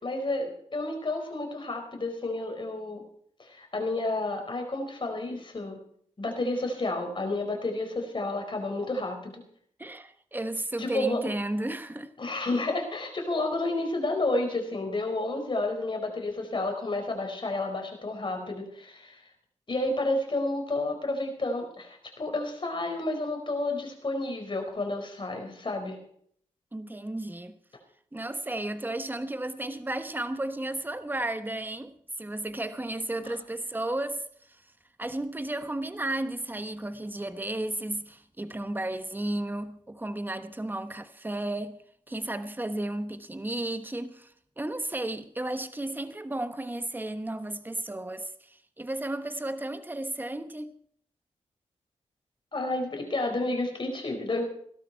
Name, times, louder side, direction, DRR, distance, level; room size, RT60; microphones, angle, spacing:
voice 1, 0.0-3.0 3.4-5.8 6.2-9.4 10.8-11.2 12.2-19.2 19.7-26.0 33.2-33.3 52.5-54.4, left 2 dB, 40° left, 4.5 m, -31 dB
voice 2, 9.8-12.1 26.7-27.6 28.1-34.6 35.0-41.8 42.1-50.7, right 1 dB, 15° right, 1.1 m, -33 dB
17.0 x 12.5 x 4.6 m
cardioid pair, 70°, 12 cm